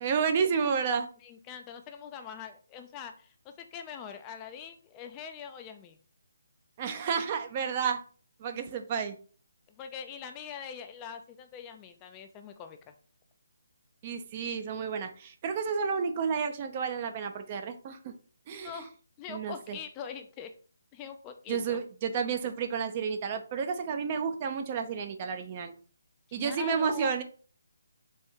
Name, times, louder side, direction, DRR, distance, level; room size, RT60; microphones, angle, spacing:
voice 1, 0.0-1.1 6.8-8.0 8.4-9.2 14.0-18.1 18.5-18.8 19.3-19.8 21.5-25.7 26.3-27.2, right 6 dB, 30° right, 7 dB, 0.5 m, -31 dB
voice 2, 1.2-6.0 9.7-12.9 18.5-18.9 19.2-20.5 20.9-21.8 26.3-27.1, left 7 dB, 20° left, 6 dB, 0.4 m, -43 dB
4.3 x 2.6 x 3.4 m, 0.40 s
figure-of-eight pair, 150°, 0 cm